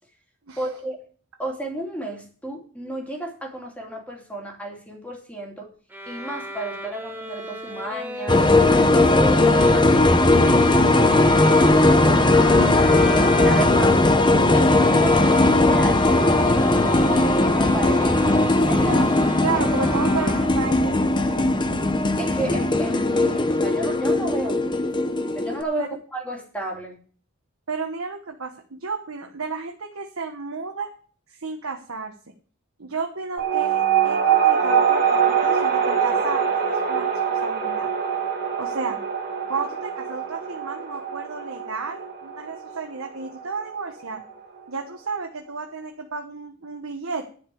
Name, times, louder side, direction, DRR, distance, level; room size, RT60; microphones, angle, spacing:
voice 1, 0.6-1.0 1.4-5.7 6.1-8.5 8.9-12.5 13.1-14.0 14.5-15.2 15.5-16.1 16.4-19.5 22.2-27.0, right 1 dB, 5° left, 0 dB, 2.7 m, -33 dB
sound 1, 5.9-20.9, right 1 dB, 10° right, 1.7 m, -34 dB
sound 2, 8.3-25.6, left 2 dB, 20° left, 0.8 m, -18 dB
voice 2, 19.4-21.5 25.8-25.9 27.7-30.9 31.3-32.1 32.8-37.9 38.6-39.0 39.5-44.2 44.7-47.3, right 4 dB, 75° right, 4 dB, 1.2 m, -32 dB
sound 3, 33.4-44.3, right 7 dB, 45° right, 2.4 m, -23 dB
11.0 x 5.1 x 8.4 m, 0.42 s
head